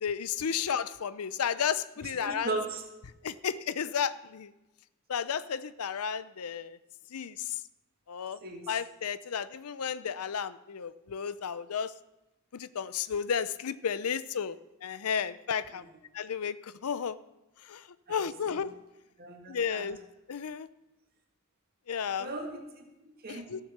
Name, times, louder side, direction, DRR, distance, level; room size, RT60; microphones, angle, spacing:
voice 1, 0.0-2.5 3.2-4.5 5.1-6.8 7.1-7.4 8.1-8.4 8.7-11.9 12.5-14.6 14.8-15.8 16.1-17.2 17.7-17.8 18.1-18.7 19.5-20.0 20.3-20.7 21.9-22.3 23.3-23.6, left 7 dB, 85° left, 15 dB, 0.6 m, -33 dB
voice 2, 2.0-2.8 8.4-8.7 15.7-15.8 18.1-18.6 19.2-20.0 22.2-23.6, right 2 dB, 45° right, 2 dB, 2.1 m, -38 dB
14.5 x 6.8 x 6.7 m, 0.96 s
head